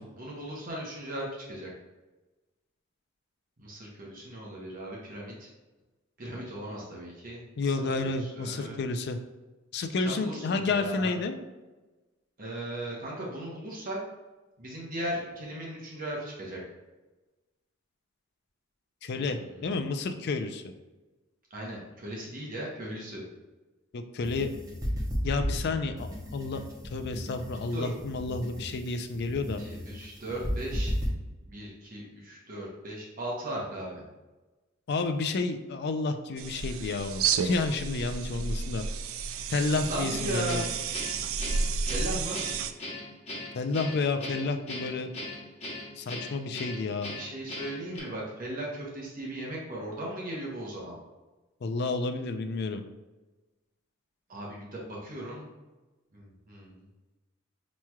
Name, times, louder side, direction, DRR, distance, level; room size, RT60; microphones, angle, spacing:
voice 1, 0.0-1.7 3.6-5.5 6.2-8.8 10.0-11.1 12.4-14.0 14.6-16.6 19.1-19.7 21.5-23.2 27.7-27.9 29.6-30.9 31.4-34.0 39.9-40.6 41.9-42.4 47.1-50.9 54.3-55.4 56.1-56.8, right 1 dB, 45° right, -3 dB, 0.9 m, -37 dB
voice 2, 7.6-9.2 9.7-11.4 19.0-20.7 23.9-24.5 25.2-26.6 26.9-29.6 34.9-38.8 39.5-40.6 43.5-45.1 46.0-47.1 51.6-52.8, left 3 dB, 55° left, 7 dB, 0.4 m, -30 dB
sound 1, 24.2-31.1, equal, 20° right, 0.8 m, -34 dB
sound 2, 36.4-42.7, right 5 dB, 85° right, 0.3 m, -31 dB
Guitar, 40.5-48.0, left 1 dB, 30° left, 1.2 m, -39 dB
5.7 x 3.0 x 2.3 m, 1.2 s
head